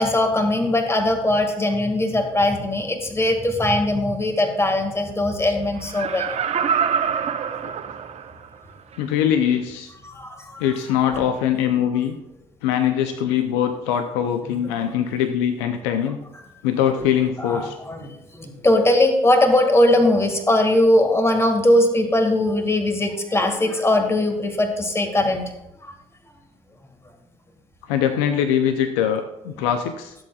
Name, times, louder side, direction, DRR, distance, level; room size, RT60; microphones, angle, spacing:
voice 1, 0.0-6.3 10.0-10.6 14.8-15.0 17.4-25.5 25.8-25.9, left 1 dB, 20° left, 4 dB, 2.0 m, -20 dB
Laughter, 5.8-8.5 8.9-9.0, right 7 dB, 55° right, 0.9 m, -25 dB
voice 2, 9.0-9.9 10.6-12.2 12.6-16.2 16.6-17.7 27.9-30.1, left 9 dB, 90° left, 7 dB, 0.6 m, -22 dB
15.5 x 7.8 x 2.4 m, 0.88 s
hypercardioid pair, 55°, 13 cm